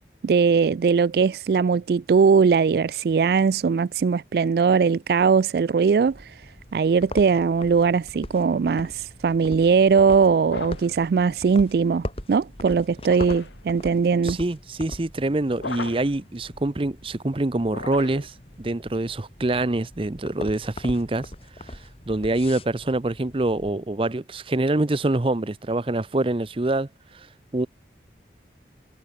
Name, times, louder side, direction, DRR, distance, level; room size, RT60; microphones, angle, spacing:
voice 1, 0.2-6.5 6.7-14.4, right 5 dB, 60° right, 0.3 m, -20 dB
sound 1, 6.0-23.7, left 1 dB, 30° left, 3.2 m, -41 dB
sound 2, 10.4-11.0 13.0-13.6 15.6-16.2 17.7-18.4, left 3 dB, 90° left, 1.7 m, -36 dB
voice 2, 14.2-21.3 21.6-21.8 22.1-27.3 27.5-27.7, right 2 dB, 30° right, 0.7 m, -25 dB
head